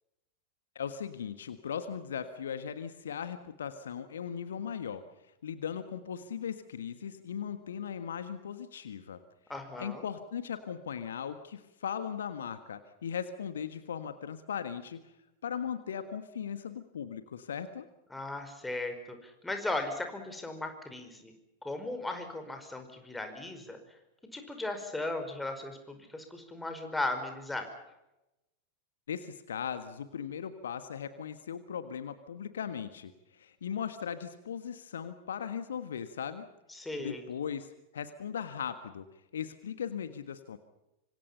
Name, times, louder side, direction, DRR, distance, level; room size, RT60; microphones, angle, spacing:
voice 1, 0.7-5.1 5.4-9.2 9.8-15.0 15.4-17.9 29.1-36.5 37.0-39.1 39.3-40.6, left 8 dB, 65° left, 11 dB, 1.5 m, -38 dB
voice 2, 9.5-10.1 18.1-21.3 21.6-23.8 24.3-27.7 36.7-37.3, left 2 dB, 5° left, 6 dB, 5.1 m, -37 dB
26.5 x 26.0 x 5.7 m, 0.93 s
figure-of-eight pair, 90°, 0 cm